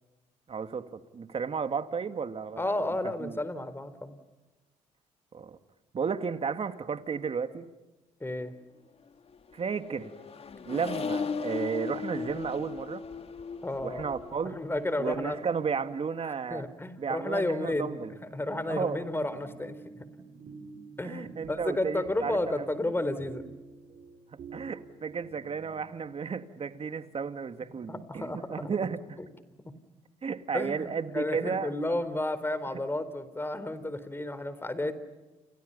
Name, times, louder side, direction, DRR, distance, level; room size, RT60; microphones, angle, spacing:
voice 1, 0.5-2.9 3.2-3.4 5.3-5.6 5.9-7.6 9.5-10.1 10.7-13.0 13.8-14.6 15.0-16.6 17.0-18.1 18.7-19.0 21.0-22.7 24.5-29.2 30.2-32.0, right 6 dB, 40° right, 9 dB, 2.3 m, -33 dB
voice 2, 2.6-4.2 8.2-8.5 13.6-14.1 14.4-15.4 16.5-18.0 18.3-20.0 21.0-23.4 27.9-28.6 29.2-29.3 30.5-34.9, left 1 dB, 15° left, 13 dB, 4.1 m, -32 dB
Accelerating revving vroom, 9.3-15.9, left 5 dB, 45° left, 2.2 m, -38 dB
sound 1, 17.6-25.9, right 4 dB, 65° right, 6.5 m, -48 dB
30.0 x 29.5 x 5.6 m, 1.1 s
supercardioid pair, 75°, 15 cm